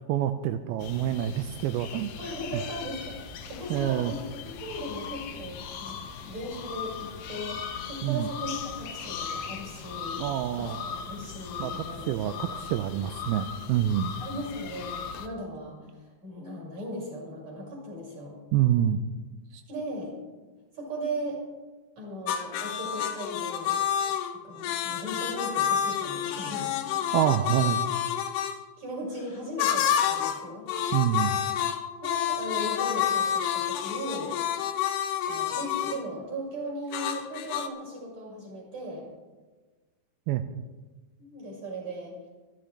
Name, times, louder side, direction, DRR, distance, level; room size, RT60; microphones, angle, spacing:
voice 1, 0.1-2.1 3.7-4.1 8.0-8.3 10.2-10.8 11.6-14.1 18.5-19.0 19.5-19.6 27.1-27.9 30.9-31.4 40.3-40.6, right 11 dB, 80° right, 8 dB, 2.4 m, -27 dB
sound 1, 0.8-15.3, left 6 dB, 70° left, 2.5 m, -39 dB
voice 2, 2.2-6.0 6.2-10.2 10.6-12.1 14.2-18.4 19.7-20.1 20.7-21.4 22.0-23.8 24.4-26.7 27.0-27.2 27.6-27.7 28.8-30.7 32.0-34.4 35.3-39.1 41.2-42.2, equal, 40° right, -4 dB, 6.9 m, -37 dB
sound 2, 22.3-28.6 29.6-30.4 30.7-36.0 36.9-37.7, left 9 dB, 90° left, 3.1 m, -29 dB
25.5 x 11.5 x 3.3 m, 1.3 s
omnidirectional pair, 4.7 m